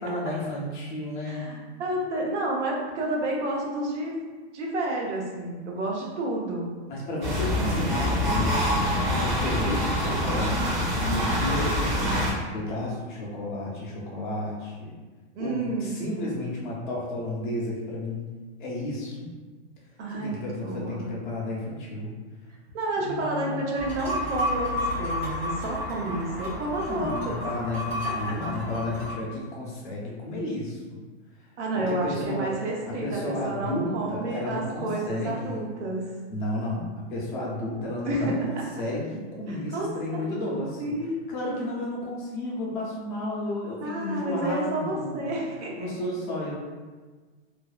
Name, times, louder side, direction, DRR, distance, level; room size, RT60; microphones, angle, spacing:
voice 1, 0.0-1.5 6.9-8.6 9.1-10.6 10.9-14.9 15.4-18.3 18.6-19.4 20.1-22.1 23.0-23.7 26.9-31.0 31.7-35.6 36.3-40.9 41.3-45.3 45.8-46.5, left 1 dB, 45° left, -4 dB, 0.6 m, -32 dB
voice 2, 1.3-4.1 4.5-6.7 11.1-11.3 15.4-16.0 20.0-21.1 22.7-27.4 28.0-28.4 31.6-36.1 38.0-38.6 39.5-40.4 40.8-41.6 43.8-45.9, right 2 dB, 75° right, -2 dB, 0.7 m, -30 dB
sound 1, 7.2-12.3, left 1 dB, 45° right, 0.7 m, -25 dB
sound 2, 23.8-29.1, left 1 dB, 5° right, 0.4 m, -31 dB
2.5 x 2.1 x 2.3 m, 1.4 s
supercardioid pair, 165°, 35 cm